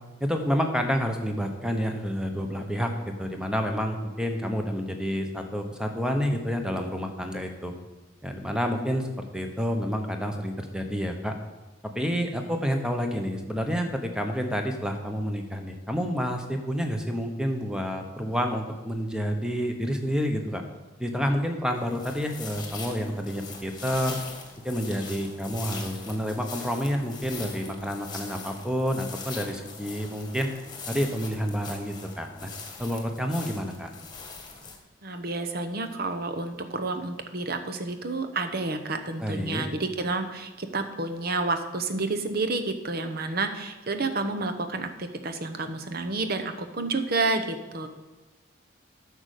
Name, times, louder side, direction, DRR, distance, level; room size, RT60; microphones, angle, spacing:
voice 1, 0.2-2.9 3.2-7.7 8.2-11.3 11.9-20.6 21.0-24.2 24.6-30.5 30.9-32.5 32.8-33.9 39.2-39.6, equal, 5° right, 4 dB, 1.0 m, -29 dB
sound 1, 21.7-34.8, left 4 dB, 20° left, 1.5 m, -41 dB
voice 2, 35.0-47.9, right 3 dB, 50° right, 7 dB, 0.9 m, -30 dB
9.6 x 6.5 x 6.6 m, 1.2 s
head